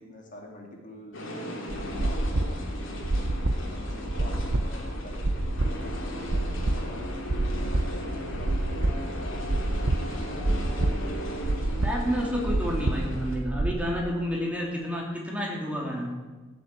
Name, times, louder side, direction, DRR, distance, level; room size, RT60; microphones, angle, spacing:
voice 1, 0.0-3.1 3.7-5.4 5.8-7.0 7.6-10.7 14.1-14.3, left 1 dB, 40° left, 0 dB, 2.3 m, -46 dB
sound 1, 1.1-13.3, left 1 dB, 65° left, 3.2 m, -37 dB
sound 2, 1.7-13.7, right 2 dB, 60° right, 0.9 m, -28 dB
voice 2, 11.8-16.1, equal, 5° right, -2 dB, 2.8 m, -30 dB
16.5 x 7.6 x 8.6 m, 1.3 s
head